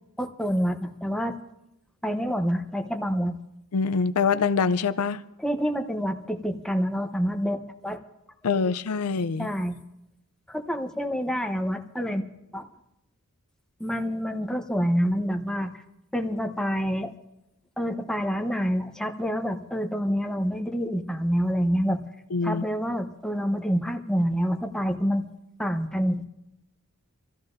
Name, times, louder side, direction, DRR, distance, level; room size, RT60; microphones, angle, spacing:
voice 1, 0.2-1.4 2.0-3.4 5.4-8.0 8.4-8.6 9.4-9.8 10.5-12.2 12.5-12.7 13.8-15.7 16.1-17.1 17.8-22.0 22.4-25.2 25.6-26.3, equal, 5° left, 0.9 m, -27 dB
voice 2, 3.7-5.2 8.4-9.5 22.3-22.6, left 5 dB, 75° left, 0.5 m, -24 dB
25.5 x 14.5 x 2.6 m
head